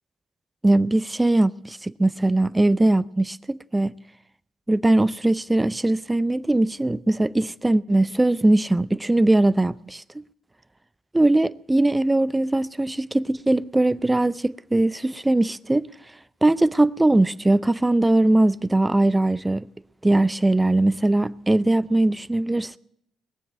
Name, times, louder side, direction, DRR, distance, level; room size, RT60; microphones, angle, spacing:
voice 1, 0.6-3.9 4.7-10.2 11.1-15.9 16.4-19.7 20.0-22.8, right 2 dB, 15° right, 0.5 m, -20 dB
20.5 x 7.3 x 7.7 m
hypercardioid pair, 50°, 0 cm